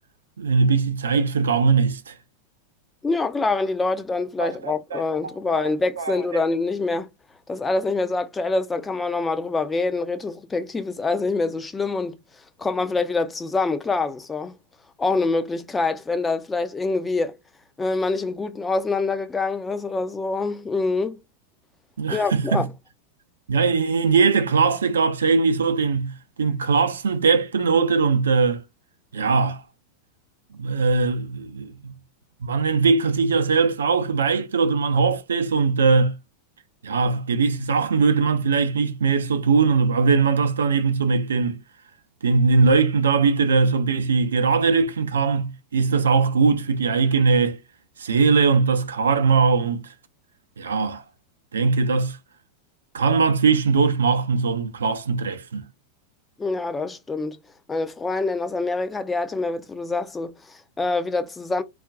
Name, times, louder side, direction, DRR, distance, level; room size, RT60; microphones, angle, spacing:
voice 1, 0.4-2.1 4.4-5.0 5.5-6.1 22.0-22.7 23.5-28.6 29.1-29.6 30.6-31.9 32.4-36.2 36.8-41.6 42.2-47.6 48.0-49.8 50.6-51.0 51.5-52.2 52.9-55.6, right 4 dB, 70° right, 0.5 m, -20 dB
voice 2, 3.0-7.1 7.5-12.2 12.6-14.6 15.0-17.4 17.8-21.2 22.1-22.7 56.4-57.4 57.7-61.6, left 3 dB, 15° left, 0.4 m, -25 dB
2.4 x 2.2 x 3.6 m
figure-of-eight pair, 90°, 0 cm